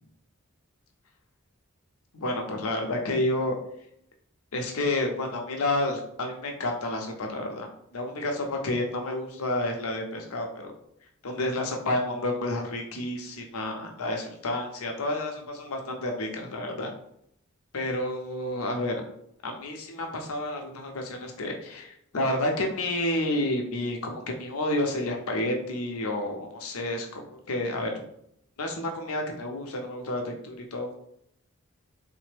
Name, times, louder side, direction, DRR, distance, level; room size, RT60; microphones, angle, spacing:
voice 1, 2.1-3.6 4.5-7.7 7.9-10.7 11.2-16.9 17.7-19.0 19.4-27.9 28.6-30.9, left 1 dB, 85° left, 2 dB, 0.6 m, -30 dB
3.2 x 2.1 x 3.2 m, 0.73 s
head